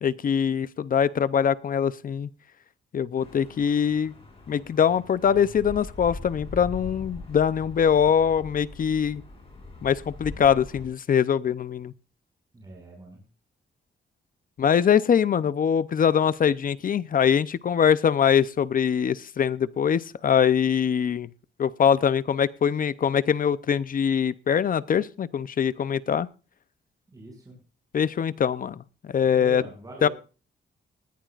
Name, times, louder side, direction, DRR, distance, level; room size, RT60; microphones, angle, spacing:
voice 1, 0.0-2.3 2.9-4.1 4.5-9.2 9.8-11.9 14.6-21.3 21.6-26.3 27.9-29.6 30.0-30.1, left 8 dB, 45° left, 16 dB, 0.6 m, -23 dB
sound 1, 3.2-10.9, left 2 dB, 30° left, 6.8 m, -42 dB
voice 2, 12.5-13.2 27.1-27.6 29.2-30.1, right 2 dB, 20° right, 0 dB, 6.1 m, -42 dB
20.0 x 14.5 x 2.5 m, 0.35 s
wide cardioid pair, 160°, 19 cm